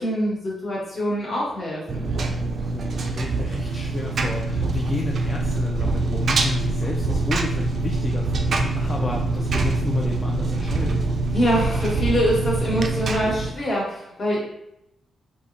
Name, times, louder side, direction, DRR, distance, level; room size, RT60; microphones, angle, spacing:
voice 1, 0.0-2.1 11.3-14.4, equal, 45° left, -5 dB, 1.3 m, -24 dB
Engine, 1.9-13.5, right 3 dB, 60° right, 0.3 m, -24 dB
voice 2, 2.6-11.1, left 2 dB, 30° left, -1 dB, 0.4 m, -31 dB
3.4 x 2.0 x 2.5 m, 0.85 s
cardioid pair, 65°, 0 cm